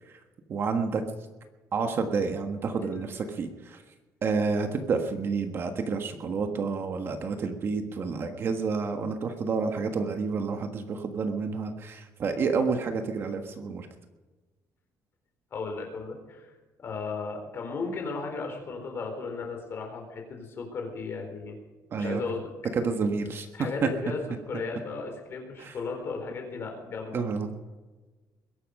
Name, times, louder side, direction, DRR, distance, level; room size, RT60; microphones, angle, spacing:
voice 1, 0.5-1.0 1.7-3.8 4.2-13.9 21.9-22.2 22.7-23.5 23.8-23.9 25.6-25.7 27.1-27.5, right 4 dB, 35° right, 6 dB, 1.4 m, -29 dB
voice 2, 15.5-16.5 16.8-21.6 22.0-22.5 23.5-24.2 24.5-27.2, left 4 dB, 35° left, 3 dB, 4.2 m, -35 dB
21.5 x 11.5 x 5.4 m, 1.2 s
cardioid pair, 175°, 7 cm